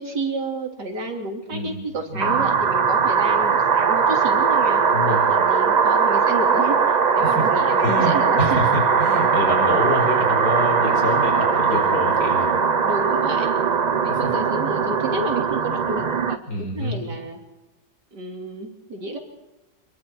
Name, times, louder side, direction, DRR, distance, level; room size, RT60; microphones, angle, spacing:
voice 1, 0.0-4.8 5.3-8.6 12.8-13.5 14.0-17.4 18.1-19.2, right 2 dB, 85° right, 2 dB, 3.8 m, -30 dB
voice 2, 2.1-2.4 4.9-5.2 7.2-7.5 7.8-12.6 14.1-14.2 16.5-17.0, left 1 dB, 70° left, 1 dB, 5.8 m, -26 dB
sound 1, 2.2-16.4, right 5 dB, 40° right, 0.6 m, -20 dB
27.5 x 22.0 x 4.7 m, 1.0 s
omnidirectional pair, 1.8 m